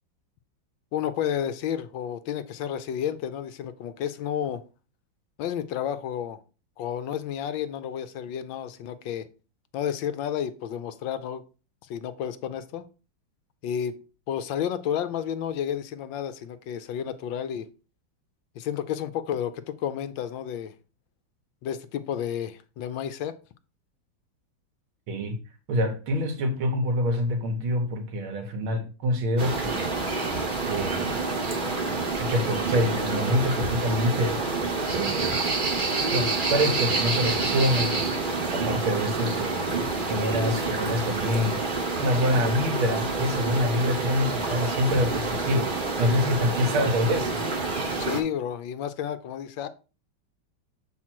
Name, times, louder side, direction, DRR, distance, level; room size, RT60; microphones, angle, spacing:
voice 1, 0.9-4.6 5.4-6.4 6.8-9.3 9.7-11.4 11.9-12.9 13.6-14.0 14.3-17.7 18.6-20.7 21.6-23.3 48.0-49.7, left 9 dB, 75° left, 1.3 m, -31 dB
voice 2, 25.1-25.4 25.7-29.8 30.6-31.1 32.2-35.4 36.1-38.0 38.5-41.6 42.0-47.4, equal, 85° right, 2.1 m, -26 dB
sound 1, 29.4-48.2, right 3 dB, 35° right, 0.9 m, -28 dB
7.3 x 4.3 x 4.4 m
omnidirectional pair, 2.2 m